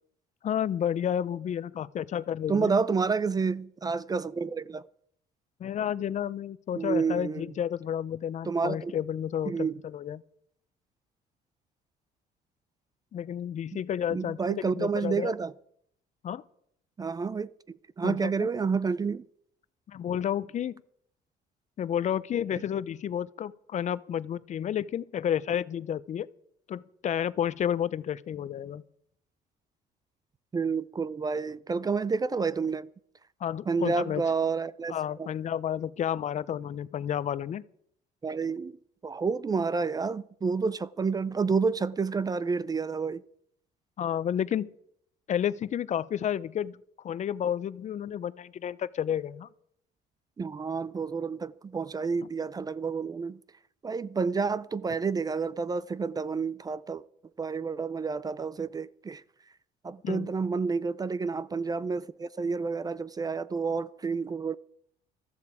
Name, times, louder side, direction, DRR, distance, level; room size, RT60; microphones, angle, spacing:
voice 1, 0.4-2.7 5.6-10.2 13.1-15.3 16.2-16.4 18.0-18.5 19.9-20.7 21.8-26.3 26.7-28.8 33.4-34.2 34.9-37.6 44.0-44.7 45.3-46.8 47.0-49.5 60.0-60.3, left 9 dB, 45° left, 0.6 m, -31 dB
voice 2, 2.5-4.8 6.7-7.4 8.5-8.9 9.5-9.8 14.1-15.5 17.0-19.2 30.5-32.9 33.7-35.3 38.2-38.8 39.0-43.2 50.4-53.4 53.8-57.0 57.4-59.2 59.8-64.5, right 5 dB, 20° right, 0.4 m, -29 dB
14.5 x 14.0 x 4.8 m
cardioid pair, 110°, 17 cm